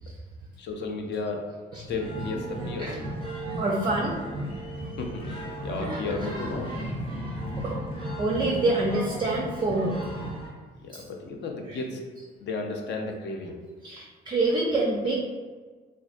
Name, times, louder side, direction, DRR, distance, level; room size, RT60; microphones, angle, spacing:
voice 1, 0.6-1.5 1.9-3.0 4.8-6.8 10.8-12.0 12.4-13.6, left 3 dB, 60° left, 2 dB, 0.4 m, -33 dB
sound 1, 1.9-10.5, right 1 dB, 25° left, 0.9 m, -35 dB
voice 2, 3.6-4.2 5.8-6.0 7.6-7.7 8.2-10.3 10.9-11.0 11.7-11.8 13.8-15.1, right 2 dB, 25° right, -2 dB, 0.4 m, -27 dB
2.4 x 2.2 x 2.4 m, 1.5 s
cardioid pair, 90°, 20 cm